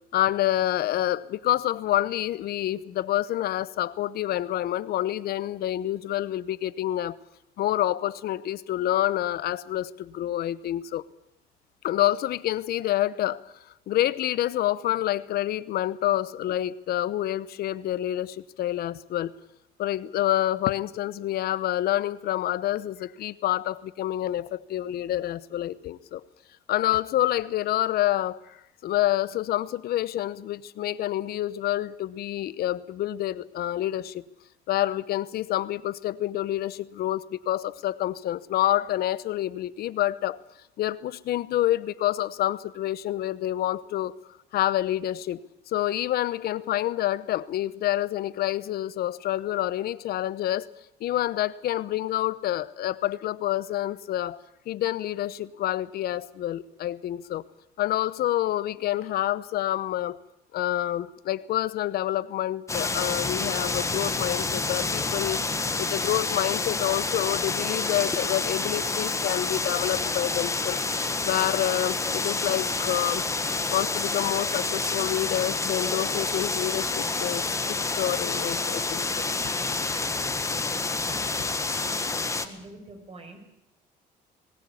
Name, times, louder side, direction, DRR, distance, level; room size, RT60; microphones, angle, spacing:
voice 1, 0.1-7.2 7.6-11.0 11.8-13.5 13.9-19.3 19.8-26.2 26.7-34.2 34.7-40.4 40.8-44.1 44.5-45.4 45.7-50.7 51.0-54.4 54.7-57.4 57.8-60.2 60.5-65.4 65.8-70.8 71.2-73.2 73.7-79.0, left 13 dB, 65° left, 17 dB, 0.9 m, -28 dB
sound 1, 62.7-82.5, left 3 dB, 15° left, 1.6 m, -28 dB
voice 2, 81.8-83.4, right 2 dB, 35° right, 6 dB, 5.6 m, -46 dB
19.5 x 18.5 x 8.5 m, 0.84 s
cardioid pair, 110°, 17 cm